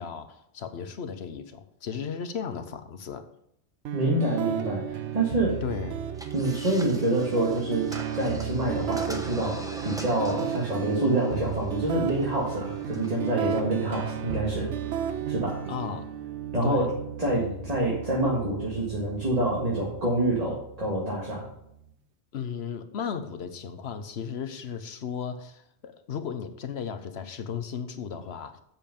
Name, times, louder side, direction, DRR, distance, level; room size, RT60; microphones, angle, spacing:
voice 1, 0.0-3.2 5.6-6.0 15.7-16.1 16.6-16.9 17.2-17.7 22.3-28.6, left 7 dB, 70° left, 10 dB, 1.1 m, -35 dB
voice 2, 3.9-5.6 6.3-14.7 15.3-15.6 16.5-16.9 17.2-21.5, right 1 dB, 35° right, -4 dB, 1.9 m, -27 dB
sound 1, 3.9-21.8, right 9 dB, 85° right, 1.0 m, -34 dB
sound 2, 6.1-13.3, equal, 5° right, 0.8 m, -43 dB
8.0 x 7.0 x 5.2 m, 0.76 s
omnidirectional pair, 1.1 m